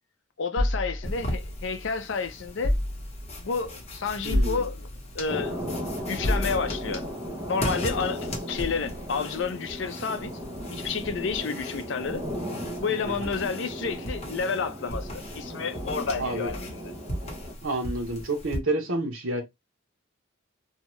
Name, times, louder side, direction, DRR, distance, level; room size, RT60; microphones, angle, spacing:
voice 1, 0.4-2.8 3.4-4.9 5.1-5.6 6.1-7.0 7.5-10.3 10.7-12.3 12.8-16.9, left 5 dB, 65° left, 0.5 m, -30 dB
sound 1, 0.6-2.0 2.6-3.5 4.3-5.2 6.2-7.0, left 1 dB, 50° right, 0.8 m, -29 dB
sound 2, 1.0-18.6, equal, 30° left, 0.9 m, -38 dB
voice 2, 4.2-4.6 13.0-13.3 16.2-16.5 17.6-19.4, right 2 dB, 80° right, 0.9 m, -29 dB
sound 3, 5.3-17.5, equal, 20° right, 0.6 m, -36 dB
2.7 x 2.3 x 3.0 m
head